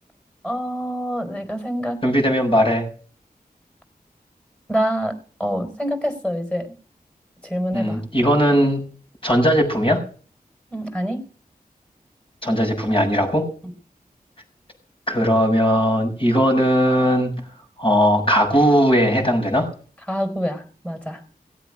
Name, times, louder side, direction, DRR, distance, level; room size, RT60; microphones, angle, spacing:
voice 1, 0.4-2.0 4.7-5.1 5.4-6.7 7.4-8.0 10.7-11.2 20.1-21.2, equal, 5° left, 7 dB, 4.3 m, -26 dB
voice 2, 2.0-2.8 7.7-8.8 9.2-10.0 12.4-13.5 15.1-17.3 17.8-19.7, equal, 35° left, 2 dB, 6.6 m, -18 dB
18.0 x 8.1 x 6.2 m, 0.41 s
wide cardioid pair, 60°, 16 cm